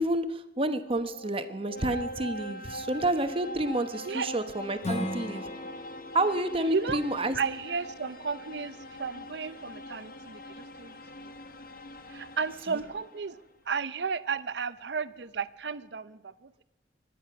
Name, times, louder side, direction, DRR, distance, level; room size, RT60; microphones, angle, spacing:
voice 1, 0.0-5.5 6.1-7.4 12.7-12.8, right 1 dB, 30° right, 1.0 m, -29 dB
sound 1, 0.6-13.4, left 1 dB, 55° left, 1.1 m, -42 dB
Strum, 4.8-10.0, left 1 dB, 40° left, 1.9 m, -40 dB
voice 2, 6.6-7.0 7.3-11.3 12.1-13.4 13.7-16.6, right 5 dB, 70° right, 0.6 m, -34 dB
24.5 x 10.0 x 5.8 m
head